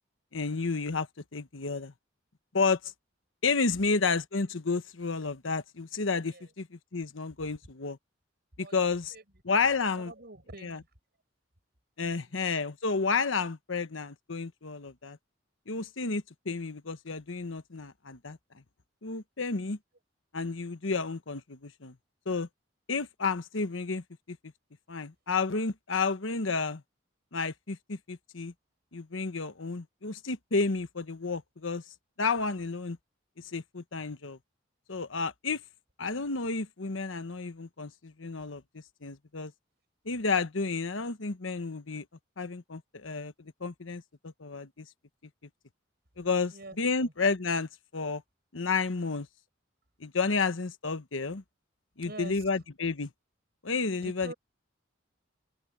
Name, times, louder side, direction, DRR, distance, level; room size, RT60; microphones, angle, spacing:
voice 1, 0.3-1.1 1.3-1.9 2.5-2.9 3.4-8.0 8.6-9.1 9.4-10.1 10.6-10.8 12.0-15.2 15.7-18.4 19.0-19.8 20.3-21.9 22.3-22.5 22.9-24.4 24.9-26.8 27.3-28.5 28.9-31.8 32.2-33.0 33.5-34.4 34.9-35.6 36.0-38.6 39.0-39.5 40.0-42.0 42.4-44.9 46.2-48.2 48.5-49.3 50.0-51.4 52.0-53.1 53.6-54.3, left 4 dB, 85° left, 1.2 m, -31 dB
voice 2, 8.6-9.2 9.7-10.9 12.0-12.4 46.5-47.1 52.0-52.7 53.9-54.3, right 2 dB, 55° right, 7.0 m, -47 dB
open air
head